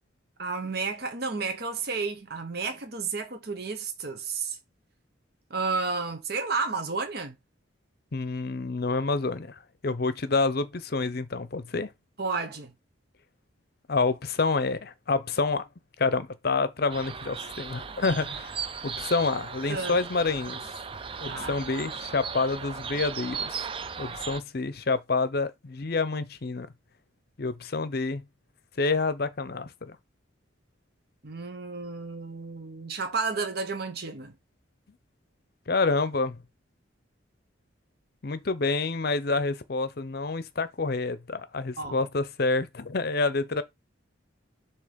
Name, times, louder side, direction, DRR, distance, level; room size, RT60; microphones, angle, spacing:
voice 1, 0.4-4.6 5.5-7.3 12.2-12.7 19.7-20.0 21.3-21.5 31.2-34.3 41.8-42.0, right 4 dB, 50° right, 1.0 m, -32 dB
voice 2, 8.1-11.9 13.9-15.6 16.0-20.6 21.2-23.6 24.0-26.7 27.4-28.2 28.8-30.0 35.7-36.4 38.2-43.6, left 3 dB, 50° left, 0.6 m, -28 dB
sound 1, 16.9-24.4, right 6 dB, 25° right, 0.4 m, -37 dB
6.7 x 3.0 x 5.1 m
head